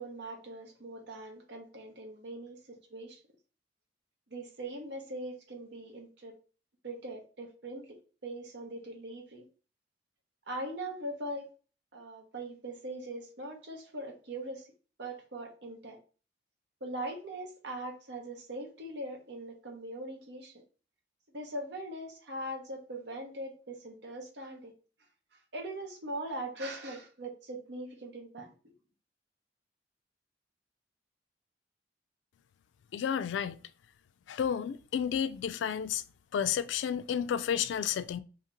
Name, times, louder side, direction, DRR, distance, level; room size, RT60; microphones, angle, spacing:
voice 1, 0.0-3.2 4.3-6.4 6.8-9.4 10.5-11.5 11.9-14.7 15.0-16.0 16.8-20.5 21.3-24.7 25.5-28.7, right 1 dB, 70° right, 1.0 m, -41 dB
voice 2, 32.9-33.6 34.3-36.0 36.3-38.2, left 8 dB, 85° left, 0.3 m, -31 dB
2.9 x 2.8 x 3.6 m
head